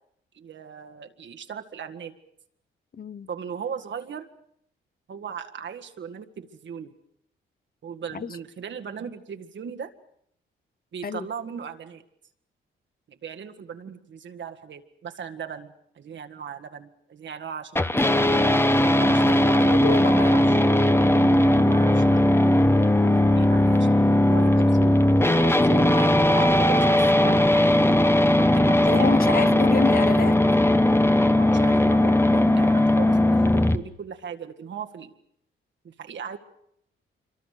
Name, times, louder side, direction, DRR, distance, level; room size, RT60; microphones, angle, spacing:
voice 1, 0.3-2.1 3.3-4.3 5.1-6.9 7.8-9.9 10.9-12.0 13.1-17.7 18.1-18.4 18.9-20.7 21.6-22.3 22.6-25.0 25.3-27.0 27.2-27.7 28.5-29.7 31.4-35.1 35.8-36.4, right 7 dB, 60° right, 1.9 m, -38 dB
voice 2, 2.9-3.3 8.1-8.4 11.0-11.3 19.3-20.1 21.1-21.5 28.8-30.4, left 5 dB, 45° left, 0.9 m, -28 dB
sound 1, 17.8-33.8, left 1 dB, 10° left, 1.4 m, -19 dB
26.0 x 24.0 x 6.7 m
cardioid pair, 70°, 21 cm